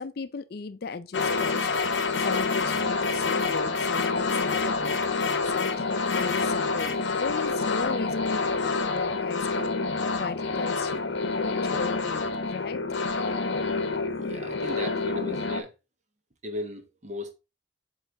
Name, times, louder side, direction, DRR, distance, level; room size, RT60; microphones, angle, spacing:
voice 1, 0.0-1.7 2.2-5.0 5.5-8.5 8.9-9.8 10.2-12.8, left 4 dB, 55° left, 0.4 m, -36 dB
sound 1, 1.1-15.6, left 4 dB, 70° left, 0.8 m, -27 dB
voice 2, 14.2-15.7 16.4-17.3, left 1 dB, 40° right, 1.1 m, -36 dB
7.9 x 3.3 x 3.8 m
head